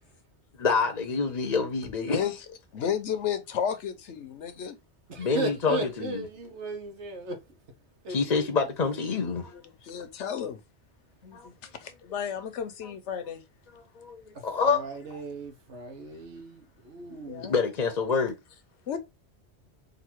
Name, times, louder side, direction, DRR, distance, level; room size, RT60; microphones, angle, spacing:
voice 1, 0.6-2.2 5.2-6.2 8.1-9.5 11.3-11.5 13.7-15.2 17.4-18.4, left 5 dB, 45° left, 0.7 m, -27 dB
voice 2, 2.0-2.3 2.7-4.8 9.8-10.6 11.2-11.5 11.8-13.4 17.1-17.5 18.9-19.0, left 8 dB, 90° left, 1.1 m, -32 dB
voice 3, 5.1-7.4 8.0-8.2 14.3-17.5, right 2 dB, 80° right, 1.4 m, -36 dB
4.0 x 2.7 x 4.4 m
omnidirectional pair, 1.2 m